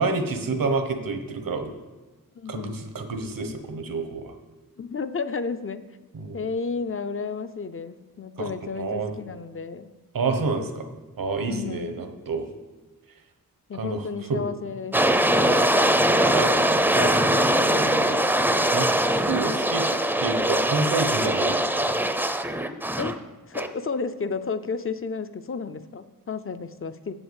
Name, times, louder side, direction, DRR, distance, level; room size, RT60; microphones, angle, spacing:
voice 1, 0.0-1.7 2.5-4.3 6.1-6.4 8.4-8.5 8.8-9.1 10.1-10.9 11.2-12.5 13.7-14.0 14.3-14.4 16.3-16.5 16.9-17.2 17.4-17.5 18.7-18.9 19.3-19.8 20.2-21.9, right 3 dB, 70° right, 6 dB, 1.2 m, -28 dB
voice 2, 2.4-2.8 4.8-5.9 6.3-9.9 11.4-12.0 13.7-16.7 17.3-18.3 23.0-23.2 23.5-27.1, left 5 dB, 40° left, 11 dB, 0.5 m, -32 dB
sound 1, 14.9-23.1 23.5-23.7, right 1 dB, 5° right, 0.6 m, -22 dB
7.9 x 7.4 x 8.1 m, 1.2 s
wide cardioid pair, 120°, 35 cm